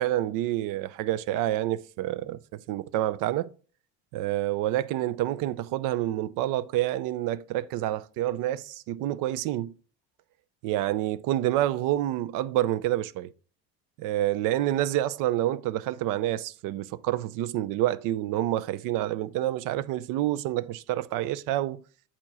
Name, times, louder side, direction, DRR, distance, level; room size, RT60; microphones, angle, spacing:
voice 1, 0.0-3.5 4.1-9.7 10.6-13.3 14.0-21.8, right 14 dB, 65° right, 0.6 m, -28 dB
8.7 x 3.0 x 6.1 m
supercardioid pair, 100°, 34 cm